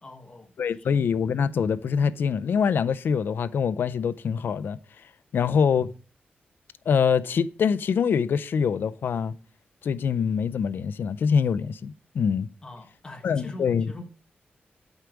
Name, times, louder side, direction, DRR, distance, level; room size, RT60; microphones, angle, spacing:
voice 1, 0.0-0.5 0.8-1.0 12.6-14.0, left 2 dB, 20° left, 1.0 m, -43 dB
voice 2, 0.6-5.9 6.9-9.3 9.8-12.5 13.2-13.9, left 6 dB, 70° left, 0.5 m, -24 dB
8.1 x 4.6 x 5.0 m
wide cardioid pair, 165°, 4 cm